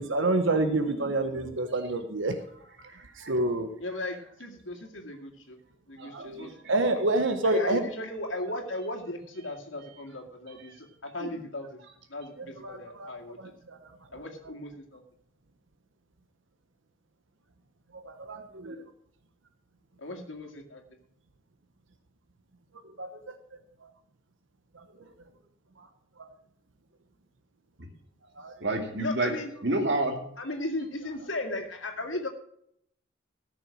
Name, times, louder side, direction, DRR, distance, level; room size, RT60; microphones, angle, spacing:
voice 1, 0.0-2.3 3.3-3.7 6.1-6.4 6.7-7.8 12.6-13.1 13.4-13.5 17.9-18.8 23.0-23.3 28.4-28.5, right 2 dB, 80° right, 7 dB, 1.0 m, -28 dB
voice 2, 1.0-1.5 2.8-3.4 6.0-6.7 11.2-11.3 28.6-29.3 29.6-30.2, right 1 dB, 60° right, 3 dB, 2.2 m, -31 dB
voice 3, 3.8-5.6 5.9-6.6 7.4-11.8 12.1-13.4 14.1-15.0 20.0-20.8 28.9-29.5 30.4-32.3, left 2 dB, 80° left, 3 dB, 2.1 m, -36 dB
14.0 x 6.3 x 6.2 m, 0.70 s
head